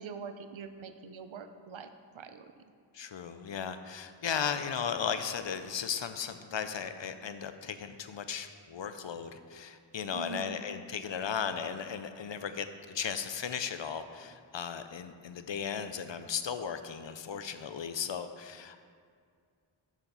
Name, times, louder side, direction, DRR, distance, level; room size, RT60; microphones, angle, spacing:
voice 1, 0.0-1.9 2.1-2.5 10.1-10.6, right 6 dB, 75° right, 9 dB, 0.6 m, -43 dB
voice 2, 2.9-18.8, left 7 dB, 65° left, 10 dB, 0.6 m, -36 dB
6.8 x 5.8 x 5.5 m, 2.1 s
wide cardioid pair, 45°, 47 cm